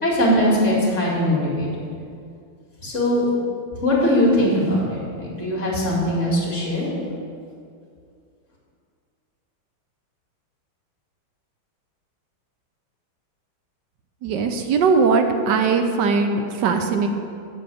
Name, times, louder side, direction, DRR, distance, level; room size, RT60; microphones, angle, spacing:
voice 1, 0.0-1.7 2.8-3.3 3.8-6.9, left 1 dB, 35° left, -6 dB, 2.7 m, -20 dB
voice 2, 14.2-17.1, right 4 dB, 70° right, 6 dB, 1.1 m, -20 dB
7.8 x 5.6 x 7.6 m, 2.3 s
omnidirectional pair, 2.3 m